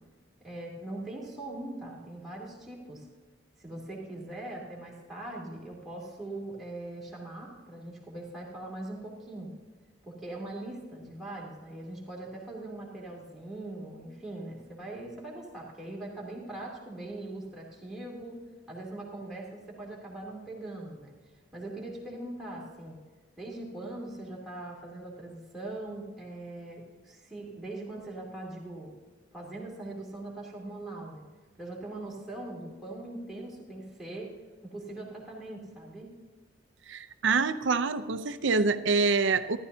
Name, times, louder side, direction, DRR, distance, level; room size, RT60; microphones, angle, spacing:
voice 1, 0.4-3.1 3.6-9.5 10.0-18.4 18.7-21.1 21.5-23.0 23.4-28.9 29.3-31.2 31.6-34.3 34.7-36.1, right 2 dB, ahead, -5 dB, 3.0 m, -41 dB
voice 2, 36.9-39.6, right 4 dB, 65° right, 11 dB, 0.6 m, -26 dB
14.0 x 12.5 x 2.8 m, 1.4 s
head